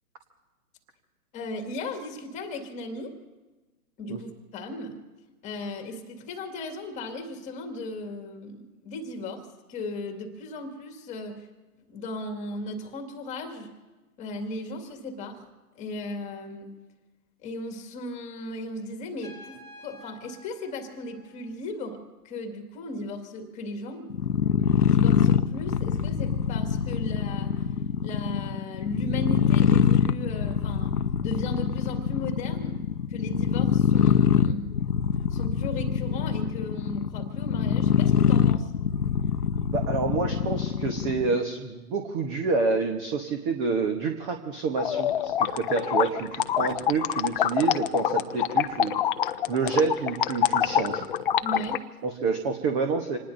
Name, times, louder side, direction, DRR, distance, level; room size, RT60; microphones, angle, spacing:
voice 1, 1.3-3.2 4.0-5.0 5.4-11.5 11.9-13.7 14.2-15.5 15.8-16.7 17.4-24.2 24.9-27.7 28.0-30.9 31.2-32.8 33.1-34.7 35.3-38.7 51.4-51.8, left 1 dB, 15° left, 4 dB, 2.0 m, -36 dB
Trumpet, 19.2-21.9, left 1 dB, 85° right, 5.7 m, -50 dB
sound 1, 24.1-41.4, left 7 dB, 85° left, 0.9 m, -24 dB
voice 2, 39.7-48.9 49.5-51.1 52.0-53.2, right 4 dB, 20° right, 4 dB, 1.1 m, -28 dB
sound 2, 44.8-51.8, left 10 dB, 35° left, 0.8 m, -26 dB
27.5 x 19.5 x 2.7 m, 1.2 s
hypercardioid pair, 140°, 45 cm